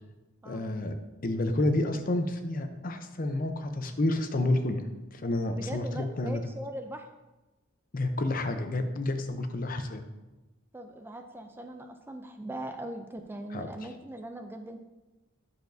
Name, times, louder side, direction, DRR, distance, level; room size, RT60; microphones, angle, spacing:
voice 1, 0.4-0.9 1.2-4.8 5.1-6.4 7.9-10.0 13.5-13.7, left 2 dB, 45° left, 7 dB, 0.7 m, -29 dB
voice 2, 5.5-7.1 10.7-14.8, right 1 dB, 10° right, 6 dB, 0.4 m, -40 dB
9.2 x 6.8 x 2.6 m, 1.1 s
head